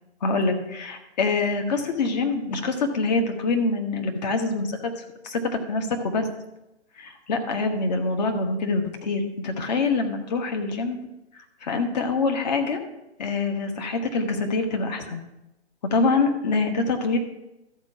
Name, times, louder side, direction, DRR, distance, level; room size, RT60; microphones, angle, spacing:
voice 1, 0.2-6.3 7.0-11.0 11.6-12.8 13.2-15.2 15.9-17.2, left 3 dB, 40° left, 4 dB, 1.2 m, -25 dB
13.0 x 4.5 x 5.8 m, 0.93 s
figure-of-eight pair, 135°, 34 cm